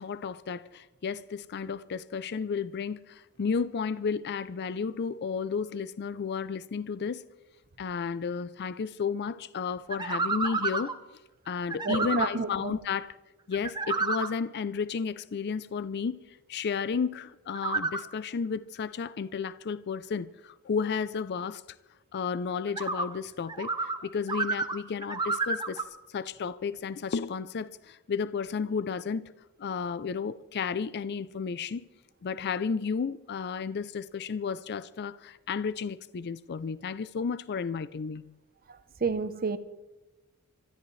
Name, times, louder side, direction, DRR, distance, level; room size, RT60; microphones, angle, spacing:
voice 1, 0.0-7.2 7.8-10.9 11.5-13.2 13.5-21.6 22.1-29.3 29.6-31.9 32.2-38.4, left 5 dB, 50° left, 0.4 m, -33 dB
sound 1, 9.9-10.9 11.7-12.3 13.5-14.3 17.5-18.0 22.7-23.1 23.5-24.0 24.3-25.8, right 3 dB, 20° right, 1.0 m, -30 dB
voice 2, 11.8-12.8 39.0-39.6, right 4 dB, 45° right, 0.8 m, -30 dB
26.5 x 13.5 x 3.2 m
head